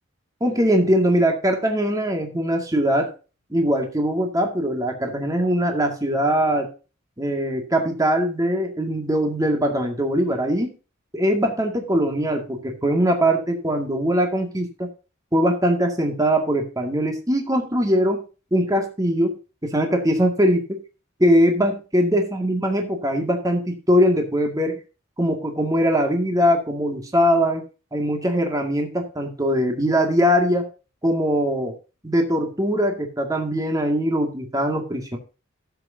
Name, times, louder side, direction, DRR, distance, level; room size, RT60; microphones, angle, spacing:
voice 1, 0.4-3.1 3.5-6.7 7.2-10.8 11.1-14.9 15.3-18.2 18.5-19.4 19.6-20.8 21.2-24.8 25.2-27.6 27.9-30.7 31.0-31.8 32.0-35.2, equal, 15° right, 2 dB, 2.1 m, -21 dB
15.5 x 7.9 x 2.7 m, 0.33 s
head